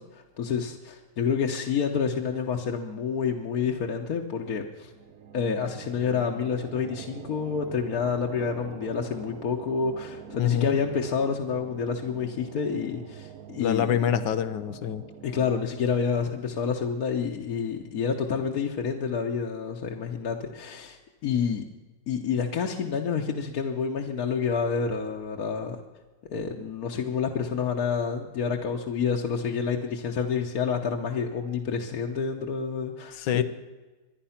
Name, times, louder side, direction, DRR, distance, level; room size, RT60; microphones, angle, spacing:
voice 1, 0.0-4.9 5.3-14.0 15.2-21.6 22.1-25.8 26.3-33.4, left 6 dB, 60° left, 1.4 m, -28 dB
sound 1, 4.8-18.2, right 8 dB, 60° right, 1.1 m, -45 dB
voice 2, 10.4-10.8 13.6-15.0 33.1-33.4, left 9 dB, 90° left, 1.4 m, -25 dB
24.5 x 10.5 x 5.8 m
omnidirectional pair, 1.9 m